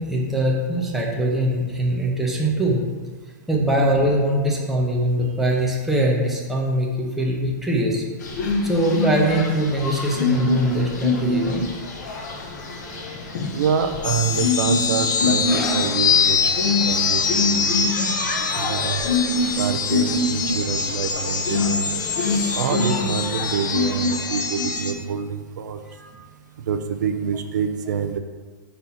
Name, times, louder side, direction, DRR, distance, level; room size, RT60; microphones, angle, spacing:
voice 1, 0.0-2.8 3.5-8.0 8.6-11.6 26.0-26.2, right 1 dB, ahead, -3 dB, 0.6 m, -22 dB
sound 1, 8.2-24.9, left 3 dB, 60° left, 1.1 m, -26 dB
voice 2, 13.5-17.7 18.6-19.0 19.6-21.9 22.5-25.8 26.7-28.2, right 7 dB, 65° right, 7 dB, 0.5 m, -26 dB
sound 2, 14.0-24.9, left 6 dB, 80° left, 0.8 m, -24 dB
sound 3, 15.4-22.4 22.6-22.9 23.6-23.7, left 1 dB, 20° left, 1.0 m, -39 dB
4.4 x 4.0 x 5.6 m, 1.4 s
hypercardioid pair, 165°, 10 cm